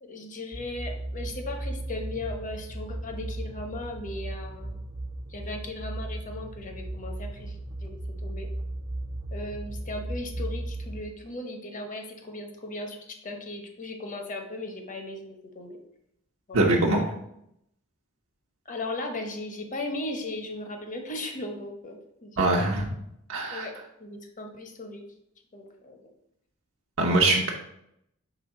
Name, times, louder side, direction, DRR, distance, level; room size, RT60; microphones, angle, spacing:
voice 1, 0.0-4.8 5.3-7.5 7.8-8.5 9.3-15.8 16.5-16.7 18.7-22.6 23.5-23.7 24.0-25.0 25.5-26.1, left 2 dB, 35° left, 4 dB, 0.9 m, -37 dB
sound 1, 0.5-11.0, right 1 dB, 30° right, 0.6 m, -36 dB
voice 2, 16.5-17.0 22.4-22.9 23.3-23.7 27.0-27.5, right 2 dB, 70° right, -1 dB, 0.9 m, -22 dB
5.0 x 3.6 x 5.7 m, 0.77 s
head